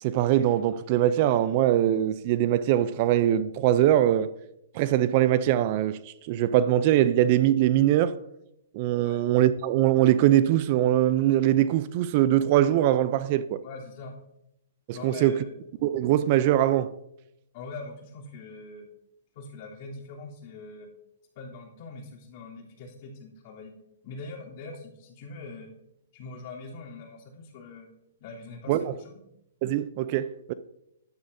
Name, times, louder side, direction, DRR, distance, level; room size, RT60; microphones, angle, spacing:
voice 1, 0.0-4.3 4.7-8.2 8.7-13.6 14.9-15.3 15.8-16.9 28.7-28.8 29.6-30.5, right 12 dB, 40° right, 0.4 m, -22 dB
voice 2, 13.6-14.2 14.9-15.5 17.5-18.9 19.3-20.9 21.3-23.7 24.0-25.7 26.1-27.9 28.2-29.2, left 3 dB, 45° left, 3.2 m, -42 dB
14.0 x 10.5 x 2.7 m
hypercardioid pair, 145°, 0 cm